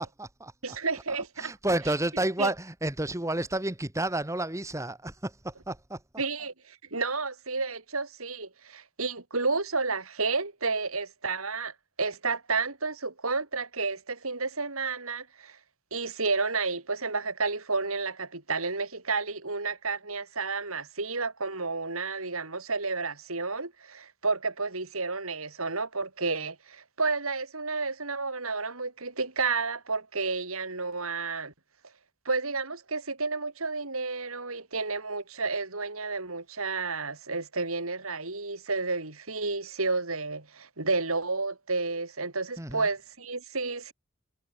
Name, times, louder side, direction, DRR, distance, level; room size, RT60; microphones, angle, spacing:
voice 1, 0.0-0.8 1.1-6.0 42.6-42.9, right 1 dB, 15° right, 1.7 m, -31 dB
voice 2, 0.6-1.5 2.4-2.5 6.2-15.6 15.9-31.5 32.2-43.9, right 4 dB, 85° right, 5.0 m, -31 dB
head